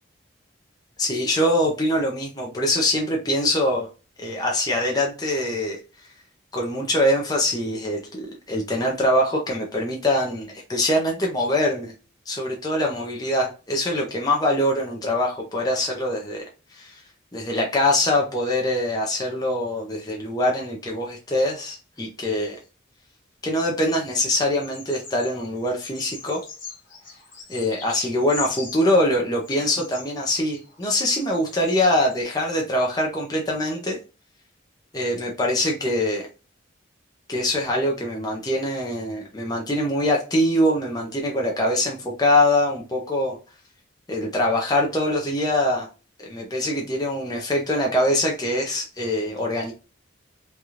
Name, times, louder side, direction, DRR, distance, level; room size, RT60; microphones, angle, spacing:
voice 1, 1.0-3.9 4.2-5.8 6.5-11.9 12.3-16.4 16.7-17.0 17.3-22.6 23.4-26.4 27.5-34.0 34.9-36.2 37.3-43.4 44.1-45.9 46.2-49.7, left 1 dB, 20° left, 0.6 m, -23 dB
Bird vocalization bird call bird song, 24.6-25.4 25.8-29.0 29.4-31.8 32.1-32.2, left 4 dB, 40° left, 1.2 m, -40 dB
3.3 x 2.4 x 2.8 m
head